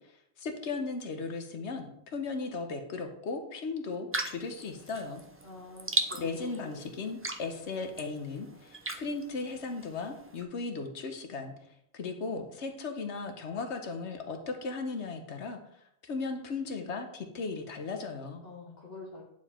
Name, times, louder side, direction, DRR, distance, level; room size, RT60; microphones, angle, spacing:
voice 1, 0.4-5.2 6.1-11.5 11.9-15.6 16.0-18.4, left 4 dB, 85° left, 5 dB, 1.2 m, -36 dB
sound 1, 4.1-10.4, right 2 dB, 20° right, 0.4 m, -38 dB
voice 2, 5.4-6.8 18.4-19.2, left 3 dB, 60° left, -3 dB, 1.5 m, -46 dB
9.0 x 4.7 x 4.3 m, 0.74 s
omnidirectional pair, 1.1 m